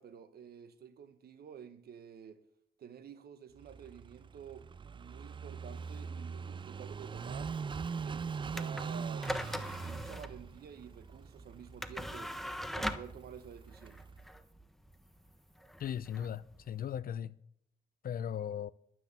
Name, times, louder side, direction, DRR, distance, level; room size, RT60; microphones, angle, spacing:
voice 1, 0.0-2.4 2.8-7.5 7.9-9.4 9.8-12.4 12.7-14.0, right 8 dB, 65° right, 1.2 m, -50 dB
Car passing by / Idling, 3.6-14.2, right 5 dB, 30° right, 0.4 m, -42 dB
sound 1, 8.5-17.0, equal, ahead, 1.1 m, -42 dB
voice 2, 15.8-17.3 18.0-18.7, left 9 dB, 60° left, 0.7 m, -37 dB
12.0 x 6.2 x 8.2 m
supercardioid pair, 65°, 17 cm